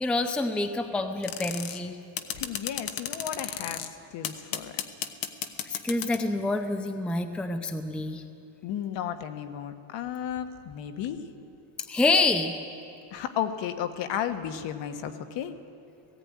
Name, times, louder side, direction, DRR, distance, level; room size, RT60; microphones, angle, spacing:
voice 1, 0.0-2.0 5.7-8.2 11.9-12.5, left 3 dB, ahead, 6 dB, 0.6 m, -27 dB
sound 1, 1.2-1.8 2.2-3.9 4.2-6.3, left 10 dB, 45° left, 1.2 m, -33 dB
voice 2, 2.3-4.7 8.6-11.2 13.1-15.5, left 9 dB, 60° left, 8 dB, 1.5 m, -33 dB
18.0 x 16.0 x 9.6 m, 2.9 s
cardioid pair, 175°, 48 cm